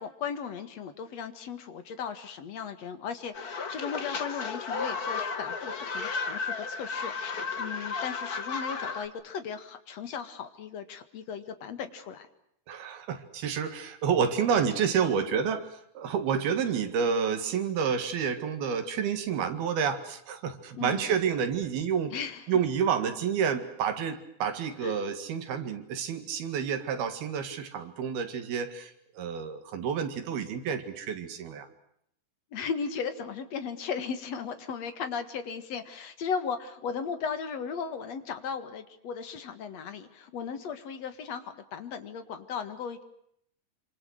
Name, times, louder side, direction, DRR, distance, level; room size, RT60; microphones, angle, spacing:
voice 1, 0.0-12.3 20.8-21.1 22.1-22.5 24.8-25.0 32.5-43.0, left 6 dB, 50° left, 9 dB, 2.5 m, -36 dB
sound 1, 3.3-9.1, left 5 dB, 85° left, 0.8 m, -33 dB
voice 2, 12.7-22.2 22.5-31.7, right 7 dB, 75° right, 9 dB, 3.9 m, -29 dB
27.0 x 26.5 x 6.4 m, 0.72 s
omnidirectional pair, 4.5 m